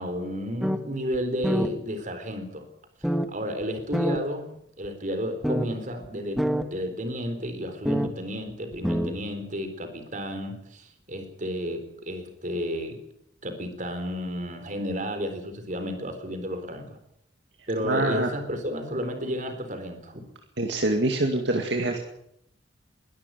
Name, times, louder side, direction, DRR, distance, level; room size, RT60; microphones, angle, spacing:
voice 1, 0.0-2.7 3.3-4.5 4.8-6.5 6.7-13.0 13.4-17.0 17.7-20.2, equal, 45° right, 7 dB, 4.0 m, -32 dB
sound 1, 0.6-0.8 1.1-1.2 1.4-1.7 3.0-3.3 3.9-4.2 4.8-4.9 5.4-5.7 6.0-6.1 6.4-6.6 7.8-8.1 8.7-9.1, equal, ahead, 1.5 m, -25 dB
voice 2, 17.6-18.3 20.6-22.0, right 2 dB, 65° right, 3 dB, 2.2 m, -25 dB
22.0 x 12.5 x 9.3 m, 0.75 s
head